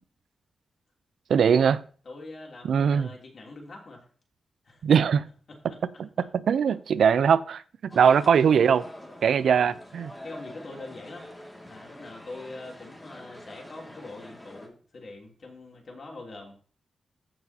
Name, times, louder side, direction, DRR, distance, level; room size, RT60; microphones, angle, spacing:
voice 1, 1.3-1.8 2.7-3.1 4.8-5.2 6.5-7.6 7.9-8.9 9.2-10.1, right 7 dB, 80° right, 0.5 m, -20 dB
voice 2, 2.0-4.0 4.6-4.8 5.5-5.8 9.5-9.7 10.2-11.3 11.7-16.5, left 2 dB, 50° left, 3.1 m, -43 dB
sound 1, 7.9-14.7, left 1 dB, 10° left, 2.3 m, -45 dB
14.5 x 6.0 x 2.9 m
wide cardioid pair, 115°, 0 cm